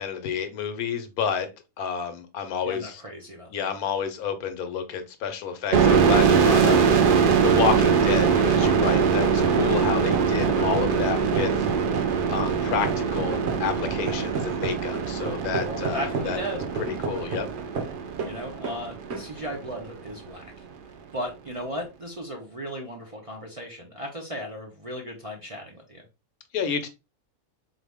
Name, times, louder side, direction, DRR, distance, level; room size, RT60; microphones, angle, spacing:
voice 1, 0.0-1.5 1.8-3.0 3.5-6.8 7.1-11.7 12.3-16.4 16.8-17.5 26.5-26.9, left 7 dB, 85° left, 9 dB, 1.2 m, -29 dB
voice 2, 2.6-3.7 15.6-16.6 18.2-20.4 21.1-26.0, equal, 35° right, -1 dB, 0.5 m, -36 dB
sound 1, 5.7-19.2, right 6 dB, 85° right, 0.4 m, -22 dB
sound 2, 7.7-18.4 18.6-18.8 19.1-19.3, right 4 dB, 55° right, 1.0 m, -33 dB
3.9 x 2.9 x 3.4 m, 0.26 s
omnidirectional pair, 1.5 m